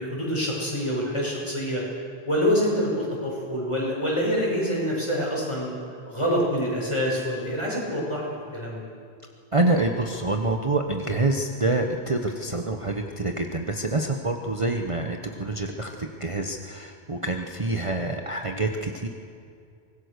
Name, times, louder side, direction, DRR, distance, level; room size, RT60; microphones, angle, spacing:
voice 1, 0.0-1.8 2.2-5.7 6.0-8.9, equal, 30° left, -4 dB, 6.5 m, -26 dB
voice 2, 9.5-19.1, right 2 dB, 30° right, 3 dB, 1.1 m, -26 dB
24.5 x 20.0 x 6.7 m, 2.3 s
omnidirectional pair, 1.0 m